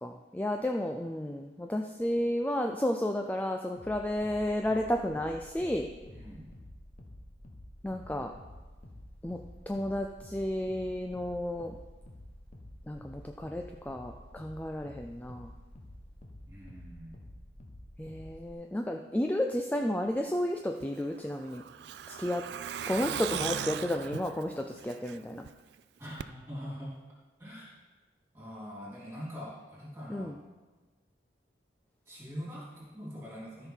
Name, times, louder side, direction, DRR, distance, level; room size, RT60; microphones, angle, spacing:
voice 1, 0.0-5.9 7.8-8.3 9.2-9.4 9.7-11.8 12.9-15.5 18.0-21.6 22.1-22.5 22.9-25.4 30.1-30.4, left 1 dB, 10° left, 3 dB, 0.4 m, -32 dB
sound 1, 3.8-18.5, left 1 dB, 45° left, 1.2 m, -50 dB
voice 2, 6.1-6.5 16.5-17.3 26.0-26.9 27.4-27.8 28.3-30.5 32.1-33.7, equal, 15° right, -6 dB, 3.2 m, -43 dB
Truck, 20.8-25.5 25.8-25.9 26.2-26.3, right 9 dB, 80° right, 0.3 m, -38 dB
13.5 x 5.7 x 4.5 m, 1.2 s
head